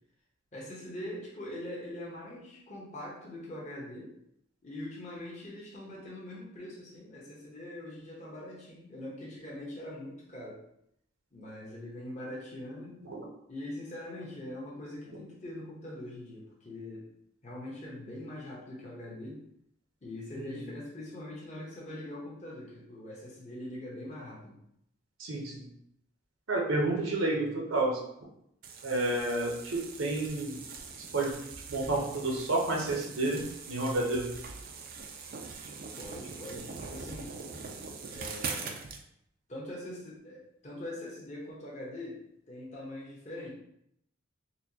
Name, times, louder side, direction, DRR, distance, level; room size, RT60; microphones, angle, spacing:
voice 1, 0.5-4.1 4.6-10.6 11.3-13.0 13.5-17.1 17.4-19.4 20.0-24.6 36.0-37.3 38.1-38.8 39.5-42.2 42.5-43.5, left 1 dB, 35° left, -6 dB, 0.9 m, -42 dB
voice 2, 25.2-25.7 26.5-28.0 28.8-30.6 31.1-31.3 31.7-34.3, right 2 dB, 70° right, -1 dB, 0.7 m, -30 dB
sound 1, 28.6-39.0, right 5 dB, 45° right, 0.3 m, -42 dB
4.3 x 2.2 x 2.8 m, 0.74 s
head